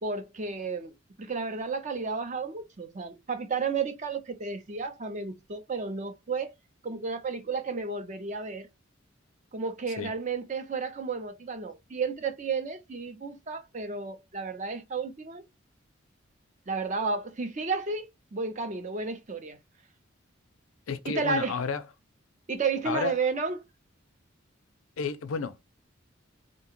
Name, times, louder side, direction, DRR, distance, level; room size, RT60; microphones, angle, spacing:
voice 1, 0.0-6.5 6.8-8.7 9.5-15.4 16.7-19.6 21.1-21.5 22.5-23.6, right 4 dB, 35° right, 0.6 m, -32 dB
voice 2, 20.9-21.8 22.8-23.1 25.0-25.6, left 5 dB, 85° left, 0.5 m, -31 dB
2.7 x 2.2 x 2.9 m
head